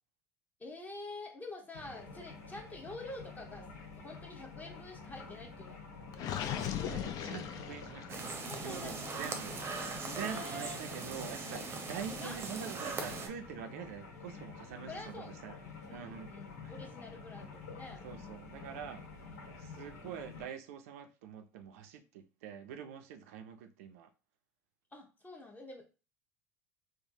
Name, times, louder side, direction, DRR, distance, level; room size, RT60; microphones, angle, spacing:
voice 1, 0.6-3.7 3.9-5.8 6.1-7.0 8.5-9.2 10.0-10.8 12.1-12.4 14.9-18.6 24.9-25.8, left 2 dB, 20° left, 0.9 m, -48 dB
sound 1, 1.7-20.5, left 4 dB, 80° left, 0.9 m, -49 dB
Gurgling, 6.1-8.3, left 9 dB, 50° left, 0.4 m, -38 dB
voice 2, 6.8-8.2 8.6-9.5 10.0-15.6 15.9-16.3 18.0-19.0 19.6-24.1, right 8 dB, 70° right, 0.4 m, -45 dB
sound 2, 8.1-13.3, right 4 dB, 30° right, 0.7 m, -40 dB
3.3 x 2.0 x 2.7 m
hypercardioid pair, 75°, 8 cm